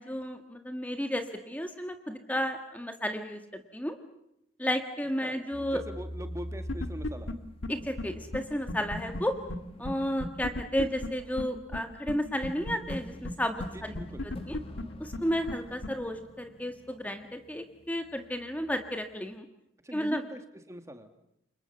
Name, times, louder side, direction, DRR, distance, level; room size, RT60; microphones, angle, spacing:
voice 1, 0.0-4.0 4.6-5.8 7.7-9.4 9.8-13.9 14.5-14.6 15.0-19.4 19.9-20.2, equal, 10° left, 6 dB, 1.6 m, -32 dB
voice 2, 5.2-7.3 13.7-14.3 19.8-20.4 20.7-21.1, equal, 15° right, 8 dB, 2.0 m, -42 dB
sound 1, 5.5-19.1, equal, 30° left, 1.9 m, -46 dB
sound 2, 6.7-7.3 7.6-7.7 8.0-8.1 8.3-8.4 8.7-9.2 9.5-9.6 9.8-9.9 10.2-11.1 11.4-11.5 11.7-11.8 12.1-12.2 12.4-13.0 13.2-13.3 13.6-13.7 13.9-14.8 15.1-15.2 15.5-15.6 15.8-15.9, left 2 dB, 85° left, 1.9 m, -34 dB
30.0 x 26.0 x 7.1 m, 0.83 s
head